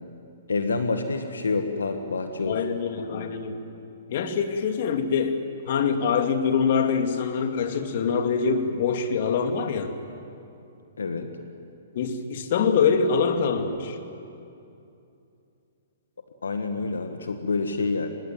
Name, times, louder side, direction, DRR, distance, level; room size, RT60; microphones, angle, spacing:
voice 1, 0.5-2.6 3.1-3.3 11.0-11.3 16.4-18.1, left 3 dB, 90° left, 7 dB, 1.8 m, -28 dB
voice 2, 2.5-3.6 4.1-5.4 5.7-9.9 11.9-14.0, left 6 dB, 55° left, 6 dB, 2.5 m, -24 dB
25.0 x 21.0 x 9.3 m, 2.7 s
hypercardioid pair, 135°, 0 cm